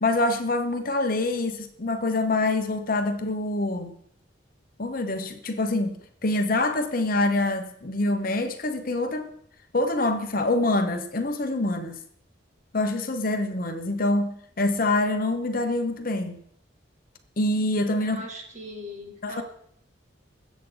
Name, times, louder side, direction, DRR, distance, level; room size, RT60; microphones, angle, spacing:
voice 1, 0.0-3.9 4.8-6.0 6.2-9.3 9.7-12.0 12.7-16.4 17.4-18.2 19.2-19.4, left 2 dB, 45° left, 1.0 m, -25 dB
voice 2, 18.0-19.4, left 1 dB, 35° right, 2.3 m, -39 dB
20.5 x 8.3 x 3.9 m
head